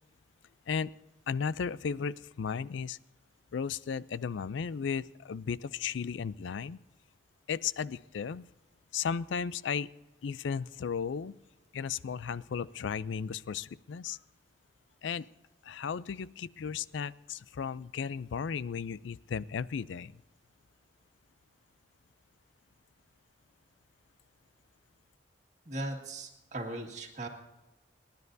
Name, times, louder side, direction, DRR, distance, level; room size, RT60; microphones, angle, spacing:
voice 1, 1.3-3.0 3.5-6.8 7.5-8.5 8.9-9.9 10.2-11.3 11.7-14.2 15.0-15.3 15.6-20.2, left 6 dB, 75° left, 19 dB, 0.4 m, -35 dB
voice 2, 25.7-27.3, right 1 dB, 40° right, 1 dB, 1.9 m, -38 dB
29.5 x 10.5 x 2.7 m, 1.0 s
head